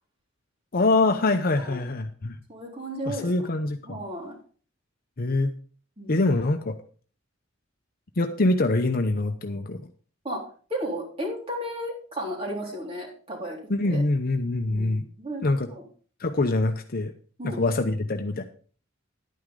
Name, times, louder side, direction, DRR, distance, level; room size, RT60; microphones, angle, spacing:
voice 1, 0.7-2.4 3.1-4.0 5.2-5.5 6.1-6.7 8.2-9.8 13.7-15.0 15.4-15.7 16.2-17.1 17.4-18.4, left 2 dB, 50° left, 6 dB, 0.8 m, -24 dB
voice 2, 2.5-3.3 3.9-4.4 6.0-6.3 10.2-10.4 10.7-13.6 13.8-14.0 14.7-15.8 17.4-17.6, equal, 30° right, -1 dB, 3.7 m, -34 dB
11.0 x 9.4 x 3.8 m, 0.42 s
head